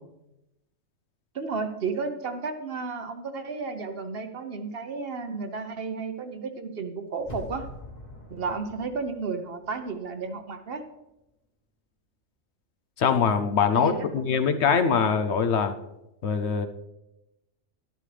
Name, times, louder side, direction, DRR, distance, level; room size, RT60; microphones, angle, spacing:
voice 1, 1.3-7.7 8.3-10.8 13.7-14.2, right 4 dB, 55° right, 7 dB, 1.0 m, -33 dB
sound 1, 7.2-10.1 10.5-10.6, left 1 dB, 35° left, 1.5 m, -44 dB
voice 2, 13.0-15.7 16.2-16.7, left 6 dB, 65° left, 9 dB, 0.9 m, -23 dB
12.0 x 11.0 x 3.3 m, 0.92 s
omnidirectional pair, 1.3 m